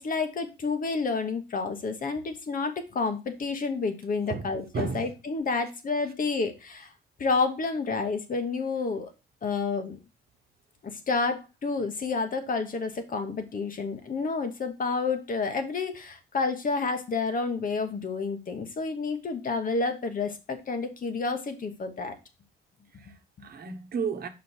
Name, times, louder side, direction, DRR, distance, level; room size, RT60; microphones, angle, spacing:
voice 1, 0.0-6.9 7.2-9.1 9.4-10.0 10.8-22.2, left 4 dB, 45° left, 1.2 m, -30 dB
voice 2, 4.3-5.1 6.0-6.1 23.0-24.3, right 5 dB, 50° right, 1.1 m, -34 dB
5.3 x 5.3 x 4.4 m
cardioid pair, 90°, 20 cm